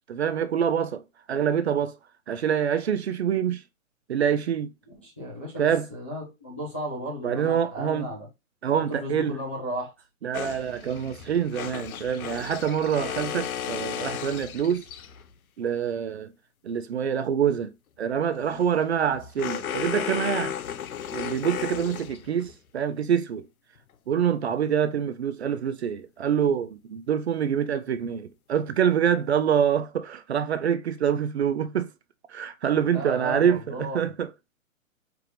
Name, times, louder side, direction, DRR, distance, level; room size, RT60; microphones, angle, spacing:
voice 1, 0.1-1.0 1.3-2.0 2.3-3.6 4.1-4.7 5.6-5.9 7.2-8.1 8.6-9.4 10.2-14.8 15.6-16.3 16.6-17.7 18.0-20.6 21.1-23.4 24.1-31.9 32.3-34.3, right 8 dB, 50° right, 0.5 m, -26 dB
voice 2, 5.0-8.3 8.9-9.9 32.8-34.2, equal, 10° left, 0.4 m, -35 dB
sound 1, 10.3-15.3 18.3-22.5, left 9 dB, 90° left, 0.7 m, -34 dB
4.6 x 2.5 x 3.1 m
hypercardioid pair, 160°, 42 cm